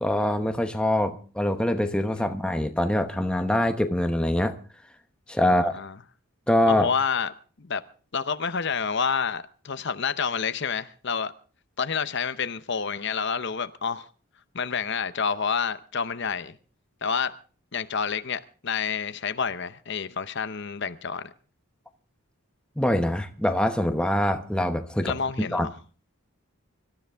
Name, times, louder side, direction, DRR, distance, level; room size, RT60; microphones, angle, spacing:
voice 1, 0.0-4.5 5.3-5.8 6.5-6.9 22.8-25.7, left 1 dB, 5° left, 0.9 m, -24 dB
voice 2, 5.5-6.0 6.6-7.8 8.1-11.3 11.8-14.1 14.5-16.5 17.0-17.4 17.7-21.3 25.0-25.8, left 6 dB, 50° left, 0.7 m, -29 dB
25.0 x 13.0 x 3.5 m
head